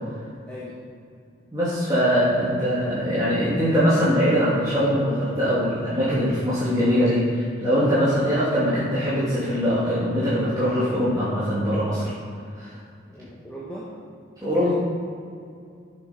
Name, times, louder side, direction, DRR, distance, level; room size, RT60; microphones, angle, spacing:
voice 1, 0.5-0.8 13.1-13.9 14.6-14.7, equal, 10° left, -7 dB, 1.5 m, -39 dB
voice 2, 1.5-12.1 12.6-12.7 14.4-14.7, equal, 20° right, -11 dB, 2.5 m, -22 dB
10.5 x 7.2 x 5.2 m, 2.4 s
head